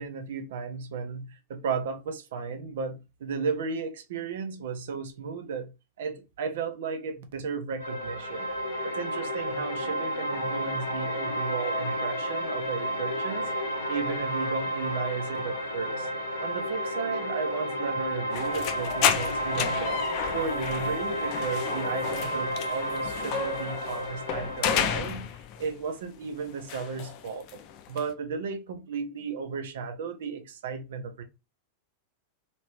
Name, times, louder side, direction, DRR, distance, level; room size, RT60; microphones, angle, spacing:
voice 1, 0.0-5.7 6.0-8.5 8.8-13.5 13.9-16.1 16.4-20.0 20.3-25.3 25.6-27.4 27.9-31.2, right 5 dB, 60° right, 0.7 m, -34 dB
sound 1, 7.8-24.8, equal, 80° left, 1.2 m, -32 dB
sound 2, 18.3-25.7 26.0-28.1, left 8 dB, 40° left, 0.4 m, -32 dB
3.1 x 2.9 x 3.0 m
figure-of-eight pair, 90°, 0 cm